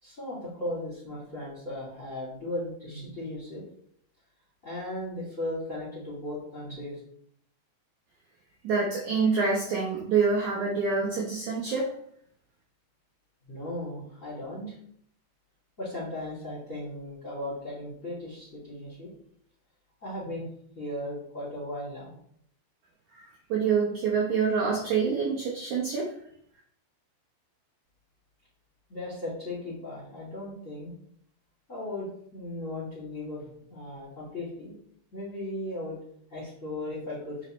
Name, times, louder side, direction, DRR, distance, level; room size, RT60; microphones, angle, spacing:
voice 1, 0.0-3.6 4.6-7.0 13.4-14.8 15.8-19.1 20.0-20.5 20.7-22.1 28.9-30.9 31.7-34.7 35.1-36.0 36.3-37.4, left 1 dB, 25° left, -6 dB, 2.2 m, -36 dB
voice 2, 8.6-11.9 23.1-26.1, right 5 dB, 85° right, -3 dB, 1.6 m, -26 dB
7.2 x 6.3 x 3.2 m, 0.67 s
omnidirectional pair, 5.0 m